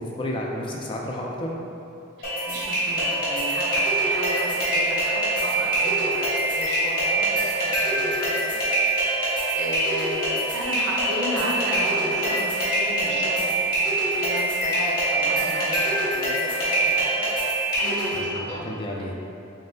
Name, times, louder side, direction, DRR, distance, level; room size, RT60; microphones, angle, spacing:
voice 1, 0.0-1.6 18.1-19.2, left 1 dB, 25° left, -2 dB, 0.3 m, -31 dB
sound 1, 2.2-18.2, right 1 dB, 50° left, 1.0 m, -24 dB
voice 2, 2.2-8.5 8.8-17.3 17.8-18.7, right 1 dB, 70° right, -3 dB, 0.7 m, -33 dB
3.7 x 3.6 x 2.7 m, 2.8 s
head